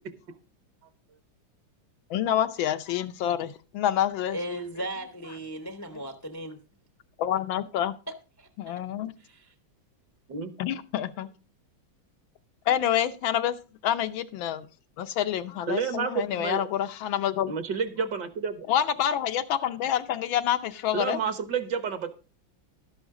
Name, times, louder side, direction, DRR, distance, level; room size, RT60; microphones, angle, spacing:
voice 1, 2.1-4.4 5.9-6.0 7.2-7.9 8.6-9.1 10.6-11.3 12.7-13.6 13.8-14.7 15.0-17.5 18.7-21.2, left 10 dB, 90° left, 9 dB, 1.6 m, -27 dB
voice 2, 4.3-6.6 8.1-8.5 9.2-9.5, right 1 dB, 20° left, 8 dB, 0.4 m, -37 dB
voice 3, 15.7-16.7 17.5-18.7 20.9-22.1, right 6 dB, 65° right, 10 dB, 1.8 m, -30 dB
12.0 x 10.5 x 3.7 m, 0.32 s
omnidirectional pair, 2.1 m